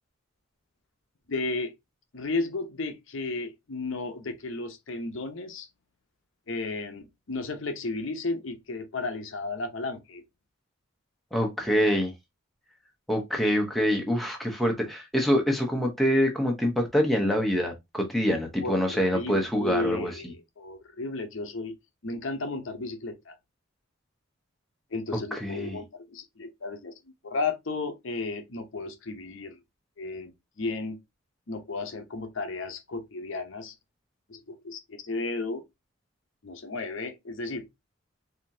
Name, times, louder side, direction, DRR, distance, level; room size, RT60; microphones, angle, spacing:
voice 1, 1.3-1.7 2.1-5.7 6.5-10.2 18.6-21.7 22.0-23.3 24.9-26.9 27.2-29.6 30.0-31.0 31.5-33.7 34.3-35.6 36.4-37.7, left 3 dB, 65° left, 0.7 m, -33 dB
voice 2, 11.3-12.1 13.1-20.1 25.3-25.8, equal, ahead, 0.7 m, -25 dB
4.1 x 2.8 x 2.7 m
head